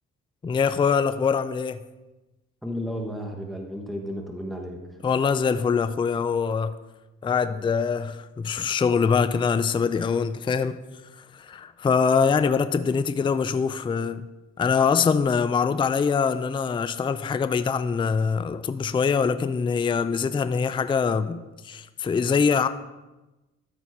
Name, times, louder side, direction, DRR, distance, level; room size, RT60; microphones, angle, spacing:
voice 1, 0.4-1.8 5.0-6.7 7.2-10.8 11.2-14.3 14.6-22.7, left 6 dB, 15° left, 0.4 m, -23 dB
voice 2, 2.6-5.0, equal, ahead, 1.1 m, -33 dB
12.5 x 4.3 x 4.6 m
cardioid pair, 90°, 30 cm